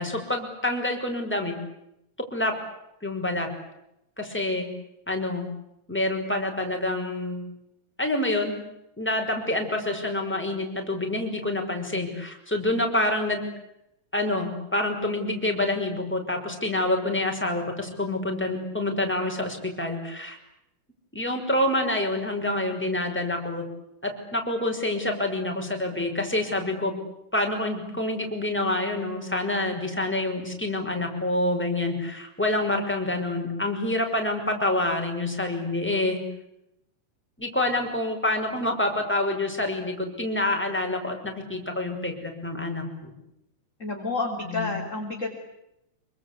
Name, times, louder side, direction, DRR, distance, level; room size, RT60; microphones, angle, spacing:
voice 1, 0.0-1.5 2.3-2.5 3.0-3.5 4.2-4.7 5.1-5.5 5.9-7.4 8.0-8.6 9.0-13.4 14.1-20.4 21.1-23.6 24.0-27.0 27.3-36.2 37.4-43.1 44.5-44.7, left 1 dB, 5° left, 3 dB, 5.6 m, -27 dB
voice 2, 43.8-45.4, left 3 dB, 25° left, 2 dB, 3.5 m, -30 dB
27.0 x 25.0 x 8.4 m, 0.84 s
omnidirectional pair, 3.3 m